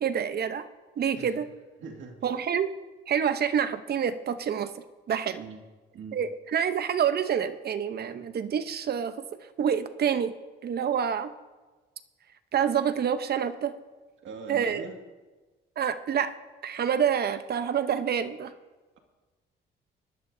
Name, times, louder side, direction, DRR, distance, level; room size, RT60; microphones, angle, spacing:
voice 1, 0.0-0.7 1.0-1.5 2.2-2.7 3.1-4.7 5.1-5.4 6.1-9.2 9.6-10.3 10.6-11.3 12.5-13.7 14.5-14.9 15.8-16.3 16.6-18.5, right 8 dB, 55° right, 11 dB, 0.8 m, -27 dB
voice 2, 1.8-2.4 5.4-5.7 5.9-6.2 14.2-15.0, right 4 dB, 80° right, 2 dB, 2.0 m, -42 dB
21.0 x 11.5 x 2.7 m, 1.3 s
cardioid pair, 90°, 20 cm